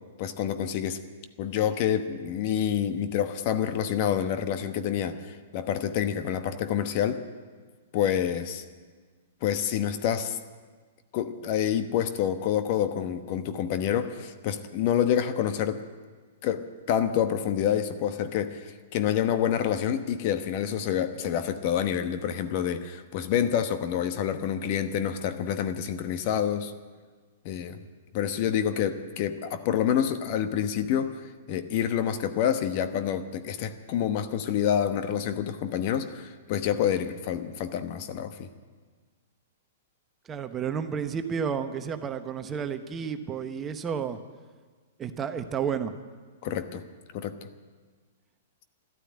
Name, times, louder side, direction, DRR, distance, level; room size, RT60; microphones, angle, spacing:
voice 1, 0.2-1.0 1.4-7.2 7.9-8.6 9.4-10.4 11.1-15.8 16.4-26.7 27.4-27.8 28.1-38.5 46.4-46.8 47.1-47.3, left 9 dB, 45° left, 9 dB, 1.1 m, -27 dB
voice 2, 40.3-44.2 45.0-46.0, right 7 dB, 20° right, 8 dB, 1.0 m, -31 dB
13.5 x 12.0 x 8.7 m, 1.5 s
hypercardioid pair, 115°, 0 cm